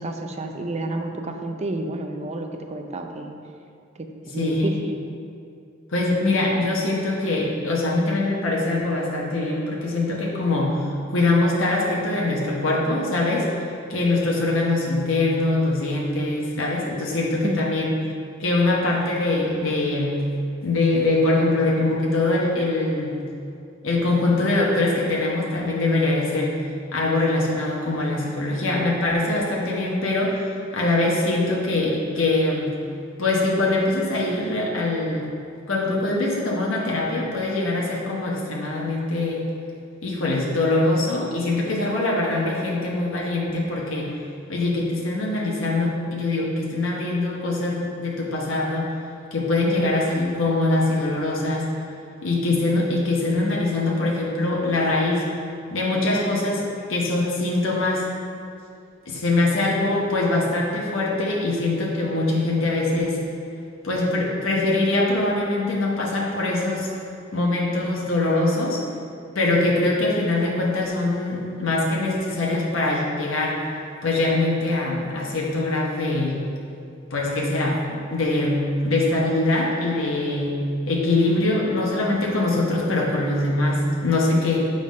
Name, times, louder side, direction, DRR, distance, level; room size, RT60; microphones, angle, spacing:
voice 1, 0.0-3.3 4.0-5.0 17.4-17.6, right 2 dB, 35° right, 4 dB, 0.5 m, -30 dB
voice 2, 4.4-4.7 5.9-13.5 13.9-17.9 18.4-20.2 20.6-23.3 23.8-26.6 26.9-32.7 33.2-35.2 35.7-39.4 40.0-44.1 44.5-48.9 49.3-51.6 52.2-55.2 55.7-58.0 59.1-63.2 63.8-66.9 67.3-68.8 69.3-73.6 74.0-76.4 77.1-77.8 78.1-80.6 80.9-84.7, left 2 dB, 80° left, -4 dB, 1.1 m, -23 dB
7.2 x 3.9 x 5.1 m, 2.5 s
head